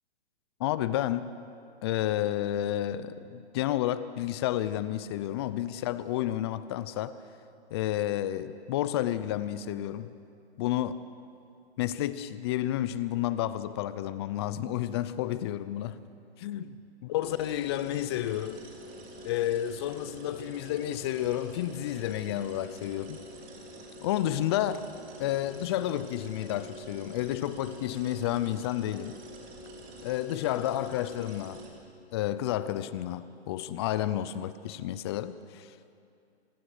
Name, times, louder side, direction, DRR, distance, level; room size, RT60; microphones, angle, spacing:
voice 1, 0.6-1.3 1.8-7.2 7.7-10.1 10.6-11.1 11.8-16.0 16.4-18.7 19.2-23.2 24.0-24.9 25.2-29.2 30.0-31.6 32.1-35.7, left 12 dB, 25° left, 0.5 m, -31 dB
sound 1, 17.2-31.7, equal, 25° right, 3.6 m, -46 dB
26.5 x 20.0 x 6.6 m
hypercardioid pair, 145°, 33 cm